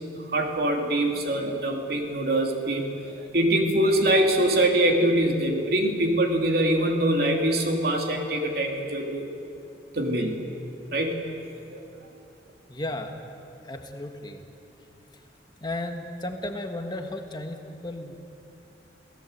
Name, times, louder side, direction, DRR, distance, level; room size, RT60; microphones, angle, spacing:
voice 1, 0.1-9.3 9.9-10.3 10.9-11.2 11.7-11.8, right 1 dB, 60° right, 2 dB, 2.9 m, -24 dB
voice 2, 12.7-13.1 13.6-14.4 15.6-18.1, left 1 dB, 25° left, 4 dB, 1.6 m, -34 dB
28.5 x 17.5 x 8.1 m, 2.8 s
head